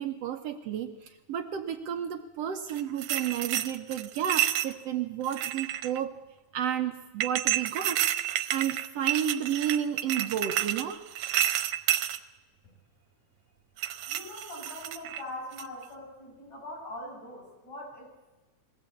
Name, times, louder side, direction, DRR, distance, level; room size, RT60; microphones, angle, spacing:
voice 1, 0.0-6.1 6.5-11.0, right 9 dB, 65° right, 7 dB, 1.8 m, -32 dB
sound 1, 2.7-4.7 5.2-6.0 7.2-12.2 13.8-15.2 15.6-15.8, right 12 dB, 90° right, 2.3 m, -30 dB
voice 2, 14.1-18.1, left 1 dB, 65° left, -2 dB, 8.8 m, -42 dB
22.0 x 16.5 x 8.5 m, 1.1 s
omnidirectional pair, 3.4 m